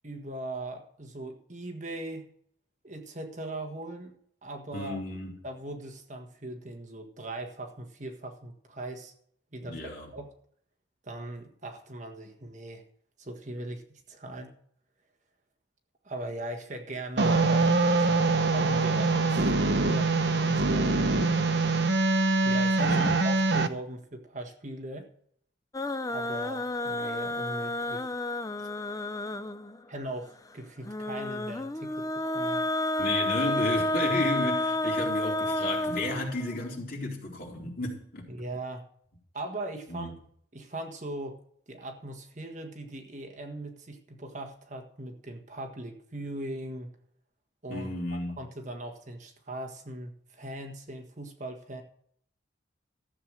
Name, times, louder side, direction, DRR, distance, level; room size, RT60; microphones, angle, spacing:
voice 1, 0.0-2.3 2.8-4.1 4.4-5.0 5.4-9.1 9.5-10.3 11.0-12.8 13.2-14.5 16.0-18.2 18.5-20.1 20.4-21.0 22.4-25.1 26.1-28.1 28.6-28.7 29.9-32.6 38.3-38.8 39.3-40.2 40.5-41.4 41.7-46.9 47.6-51.8, right 1 dB, 40° right, 4 dB, 1.6 m, -39 dB
voice 2, 4.7-5.3 9.6-10.1 22.8-23.1 33.0-38.3 39.9-40.1 47.7-48.4, left 2 dB, 50° left, -2 dB, 4.1 m, -33 dB
sound 1, 17.2-23.7, right 3 dB, 60° right, 1.0 m, -24 dB
sound 2, 25.7-29.8 30.9-36.7, left 1 dB, 15° left, 0.5 m, -30 dB
14.0 x 7.9 x 6.3 m, 0.64 s
head